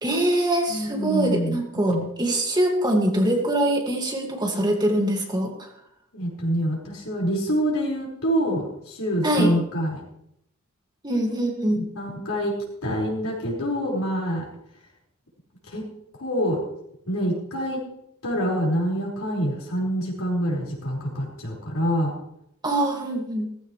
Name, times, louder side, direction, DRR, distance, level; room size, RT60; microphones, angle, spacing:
voice 1, 0.0-5.7 9.2-9.5 11.0-11.8 22.6-23.5, right 1 dB, 20° right, 1 dB, 2.0 m, -23 dB
voice 2, 0.7-2.1 6.1-10.0 11.7-12.5 12.8-14.4 15.7-15.8 16.2-16.6 17.1-17.8 18.2-22.1, equal, 70° left, -2 dB, 5.0 m, -26 dB
16.5 x 15.0 x 3.2 m, 0.76 s
head